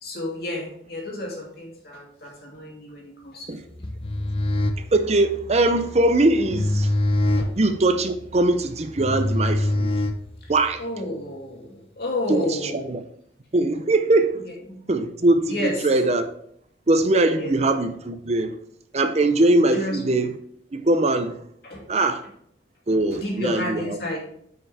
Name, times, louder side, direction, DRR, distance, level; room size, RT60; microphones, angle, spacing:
voice 1, 0.0-3.5 7.4-7.5 10.4-10.5 10.8-12.9 14.4-14.8 15.5-15.7 17.4-17.5 19.7-20.0 21.6-21.8 22.9-24.2, left 1 dB, 55° left, 2.7 m, -31 dB
sound 1, 3.7-10.7, left 1 dB, 30° left, 0.6 m, -25 dB
voice 2, 4.9-6.9 7.6-9.9 10.5-10.8 12.3-13.0 13.5-14.4 14.9-16.3 16.9-18.6 18.9-20.3 20.7-21.4 21.9-22.2 22.9-24.0, right 2 dB, 35° right, 0.6 m, -21 dB
9.3 x 5.7 x 3.4 m
head